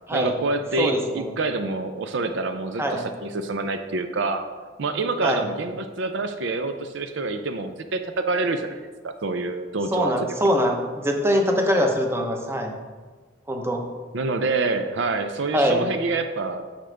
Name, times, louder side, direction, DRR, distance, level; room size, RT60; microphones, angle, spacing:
voice 1, 0.1-4.5 4.8-10.1 14.1-16.6, right 3 dB, 65° right, 8 dB, 0.5 m, -27 dB
voice 2, 0.8-1.3 2.8-3.1 5.2-5.5 9.9-12.7 13.5-13.8 15.5-15.8, equal, 15° right, 3 dB, 0.8 m, -23 dB
9.9 x 6.5 x 3.4 m, 1.4 s
head